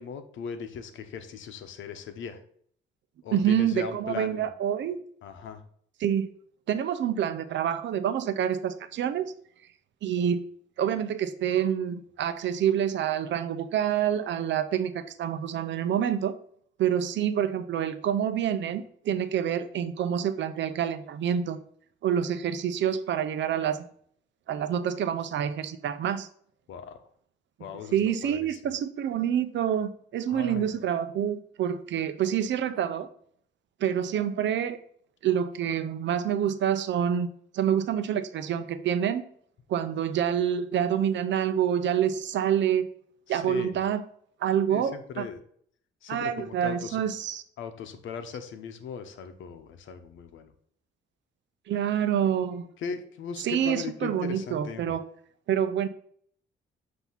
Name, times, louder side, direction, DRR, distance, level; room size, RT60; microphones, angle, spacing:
voice 1, 0.0-2.4 3.2-4.5 5.2-5.6 26.7-27.0 27.6-28.6 30.3-30.7 43.3-43.8 44.7-45.4 46.0-47.0 47.6-50.5 52.8-54.9, left 6 dB, 75° left, 8 dB, 0.9 m, -38 dB
voice 2, 3.3-5.0 6.0-6.3 6.7-9.2 10.0-10.4 10.8-16.4 16.8-21.6 22.0-23.9 24.5-26.3 27.9-33.1 33.8-34.8 35.2-37.3 37.5-39.2 39.7-42.9 43.3-44.0 44.4-45.3 46.1-47.4 51.7-52.7 53.4-55.0 55.5-55.9, right 9 dB, 65° right, 12 dB, 0.6 m, -27 dB
8.1 x 2.8 x 5.7 m, 0.62 s
cardioid pair, 90°, 20 cm